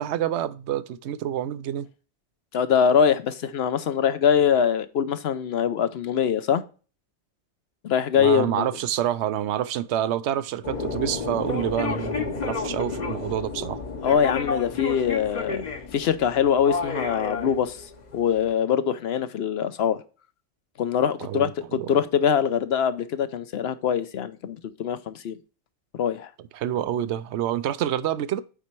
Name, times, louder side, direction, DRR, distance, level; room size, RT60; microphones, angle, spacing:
voice 1, 0.0-1.9 8.2-13.8 21.2-21.5 21.8-22.0 26.5-28.4, right 11 dB, 75° right, 0.9 m, -27 dB
voice 2, 2.5-6.6 7.8-8.7 14.0-17.9 18.1-20.0 20.8-25.4 25.9-26.3, left 8 dB, 65° left, 0.9 m, -23 dB
sound 1, 10.6-18.5, left 4 dB, 40° left, 0.9 m, -31 dB
8.8 x 4.2 x 4.5 m
omnidirectional pair, 1.2 m